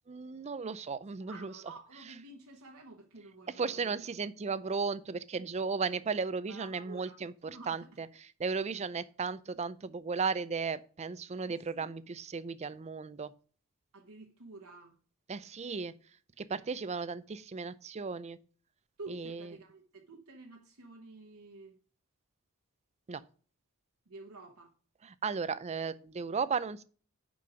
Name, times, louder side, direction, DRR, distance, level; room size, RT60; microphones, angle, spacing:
voice 1, 0.1-1.5 3.5-8.1 8.4-13.3 15.3-15.9 16.4-18.4 19.1-19.5 23.1-23.2 25.0-26.8, right 5 dB, 30° right, 0.4 m, -35 dB
voice 2, 1.2-4.0 6.5-7.2 7.5-8.0 8.7-8.8 11.4-11.9 13.9-15.0 19.0-21.7 24.1-24.7, right 3 dB, 75° right, 1.2 m, -50 dB
6.7 x 5.3 x 4.9 m
head